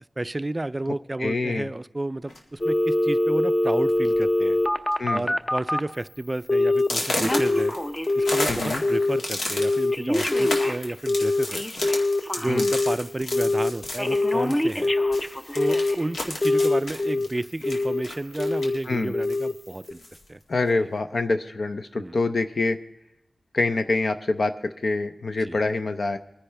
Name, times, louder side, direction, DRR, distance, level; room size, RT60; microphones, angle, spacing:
voice 1, 0.2-4.6 5.1-7.8 8.2-11.6 12.4-14.9 15.5-20.0 20.3-20.4 21.9-22.2 25.5-25.6, right 2 dB, 25° right, 15 dB, 0.4 m, -31 dB
voice 2, 1.2-1.7 5.0-5.2 8.5-8.8 12.5-12.7 18.9-19.1 20.5-22.8 23.5-26.2, left 3 dB, 55° left, 8 dB, 0.6 m, -25 dB
sound 1, 2.3-2.6 3.4-3.5 3.9-4.2 4.5-4.9 5.3-5.4 5.9-6.0 6.8-14.9 15.1-18.8 19.2-20.2, left 2 dB, 75° left, 1.9 m, -33 dB
Telephone, 2.6-5.9 6.5-6.9 7.1-8.5 8.8-9.2 9.6-13.0 13.3-13.7 14.0-16.0 16.4-17.3 17.6-18.0 18.4-18.8 19.1-19.5 19.9-20.0, left 2 dB, 20° left, 0.7 m, -23 dB
22.0 x 10.0 x 3.3 m, 0.87 s
wide cardioid pair, 95°, 0 cm